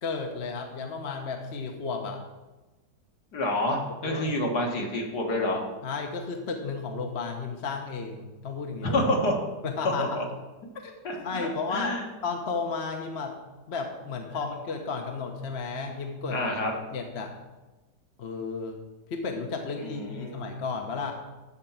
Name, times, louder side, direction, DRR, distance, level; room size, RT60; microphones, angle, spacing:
voice 1, 0.0-2.2 4.0-4.4 5.8-9.0 9.6-10.2 10.8-12.0 12.2-13.4 13.7-16.5 16.9-17.3 18.2-18.8 19.1-21.1, left 4 dB, 40° left, 3 dB, 1.1 m, -33 dB
voice 2, 3.3-5.6 8.8-9.4 10.0-10.2 11.0-11.4 11.7-12.0 16.3-16.7 19.8-20.4, left 1 dB, 65° left, 0 dB, 2.3 m, -28 dB
13.0 x 4.5 x 7.3 m, 1.1 s
omnidirectional pair, 1.9 m